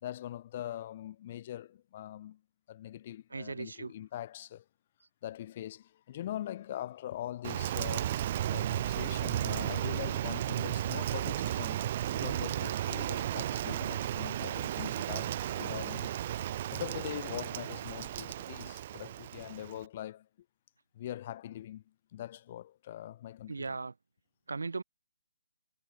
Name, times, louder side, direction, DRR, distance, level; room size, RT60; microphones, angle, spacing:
voice 1, 0.0-2.4 2.7-4.6 5.2-8.2 8.5-11.8 12.1-16.4 16.7-20.3 20.9-21.8 22.1-23.8, left 12 dB, 35° left, 2.8 m, -42 dB
voice 2, 3.3-3.9 23.5-23.9 24.5-24.8, right 4 dB, 70° right, 0.9 m, -37 dB
Rain, 7.4-19.9, right 12 dB, 35° right, 1.0 m, -34 dB
figure-of-eight pair, 140°, 0 cm